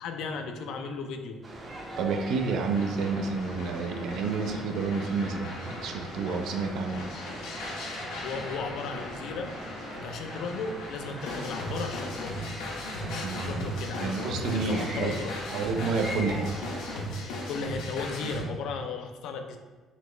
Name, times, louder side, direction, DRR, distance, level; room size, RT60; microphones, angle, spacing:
voice 1, 0.0-1.4 8.2-9.5 9.9-12.5 13.0-15.4 17.5-19.6, left 4 dB, 65° left, 6 dB, 0.4 m, -36 dB
sound 1, 1.4-17.0, right 1 dB, 25° right, 0.6 m, -42 dB
voice 2, 2.0-7.0 13.2-13.6 14.0-15.1 15.5-16.5, right 4 dB, 65° right, 5 dB, 0.4 m, -30 dB
sound 2, 2.2-18.4, left 1 dB, 85° left, 0.8 m, -37 dB
4.1 x 2.9 x 3.2 m, 1.3 s
cardioid pair, 160°, 0 cm